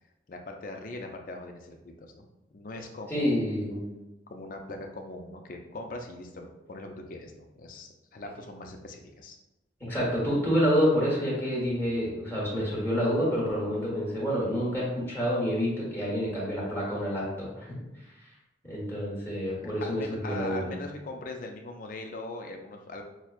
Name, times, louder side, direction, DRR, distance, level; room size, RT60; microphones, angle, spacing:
voice 1, 0.3-2.3 2.5-3.4 4.3-9.4 19.8-23.0, left 2 dB, 45° left, 3 dB, 0.4 m, -41 dB
voice 2, 3.1-3.8 9.9-17.7 18.6-20.7, equal, 10° left, -6 dB, 1.2 m, -28 dB
5.9 x 2.1 x 2.4 m, 1.0 s
head